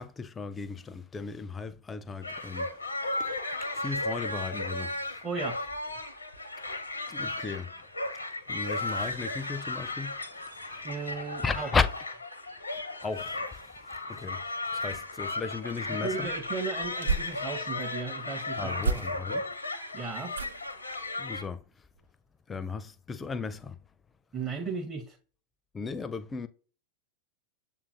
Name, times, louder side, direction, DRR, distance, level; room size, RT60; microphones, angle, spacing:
voice 1, 0.0-3.3 3.6-5.2 7.1-7.7 8.5-10.9 11.4-11.9 13.0-16.3 18.6-19.5 21.2-21.6 22.5-23.8 25.7-26.5, left 5 dB, 15° left, 0.4 m, -35 dB
sound 1, 2.2-21.4, left 2 dB, 80° left, 0.6 m, -35 dB
voice 2, 5.2-5.6 10.8-11.7 15.9-19.0 19.9-20.3 24.3-25.2, right 5 dB, 20° right, 0.6 m, -36 dB
sound 2, 16.2-17.9 18.8-19.5 20.3-20.8 21.3-21.6 21.9-22.0, right 4 dB, 70° right, 0.4 m, -34 dB
6.9 x 2.5 x 2.6 m
figure-of-eight pair, 90°, 0 cm